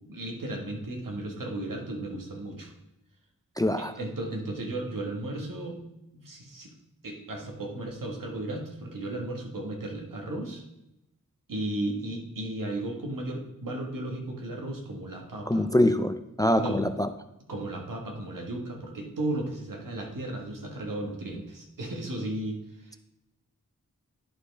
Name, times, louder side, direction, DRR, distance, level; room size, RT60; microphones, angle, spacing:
voice 1, 0.0-2.7 3.8-5.8 6.1-6.7 7.0-10.6 11.5-15.6 16.5-16.8 17.5-22.6 22.8-23.0, right 1 dB, 75° right, 1 dB, 1.6 m, -35 dB
voice 2, 3.6-3.9 15.5-17.1, left 1 dB, 10° left, 10 dB, 0.4 m, -24 dB
11.0 x 4.6 x 3.3 m, 0.89 s
wide cardioid pair, 60°, 33 cm